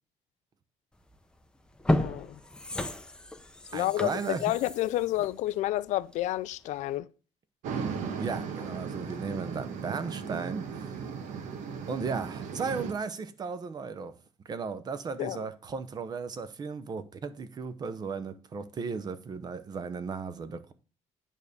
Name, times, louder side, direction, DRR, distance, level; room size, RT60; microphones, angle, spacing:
sound 1, 1.1-1.2 1.7-6.4 6.8-6.9, left 1 dB, 5° left, 0.6 m, -33 dB
voice 1, 1.9-2.4 3.7-7.1 15.2-15.4, left 15 dB, 75° left, 0.5 m, -30 dB
voice 2, 3.7-4.4 8.2-10.9 11.9-14.1 14.5-20.7, right 5 dB, 35° right, 0.7 m, -35 dB
sound 2, 7.6-12.9, right 6 dB, 85° right, 1.2 m, -36 dB
9.1 x 3.6 x 6.6 m
cardioid pair, 145°, 12 cm